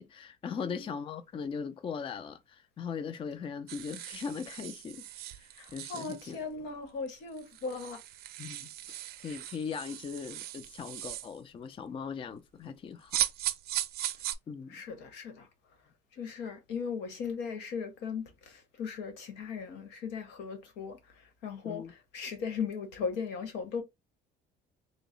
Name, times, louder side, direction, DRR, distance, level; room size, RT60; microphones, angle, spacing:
voice 1, 0.0-6.4 8.4-13.2 14.5-14.8 21.6-21.9, left 6 dB, 30° left, 0.4 m, -39 dB
sound 1, 3.7-6.4 7.1-7.2 7.4-11.4 13.1-14.3, right 13 dB, 70° right, 0.5 m, -38 dB
voice 2, 5.6-8.0 14.7-15.5 16.2-23.8, left 5 dB, 85° left, 1.1 m, -38 dB
3.8 x 2.0 x 3.7 m
cardioid pair, 110°, 17 cm